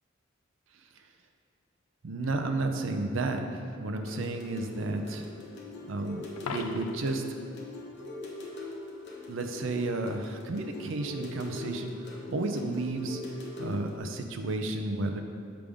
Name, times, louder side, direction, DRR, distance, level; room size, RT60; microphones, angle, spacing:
voice 1, 2.0-5.3 5.9-6.2 6.5-7.2 9.3-13.2 13.6-15.2, right 2 dB, 65° right, 5 dB, 0.5 m, -32 dB
sound 1, 4.0-14.0, left 2 dB, 55° left, 0.9 m, -42 dB
Coin (dropping), 6.4-7.2 13.3-13.5, left 5 dB, 90° left, 0.4 m, -39 dB
6.7 x 3.5 x 5.0 m, 2.3 s
head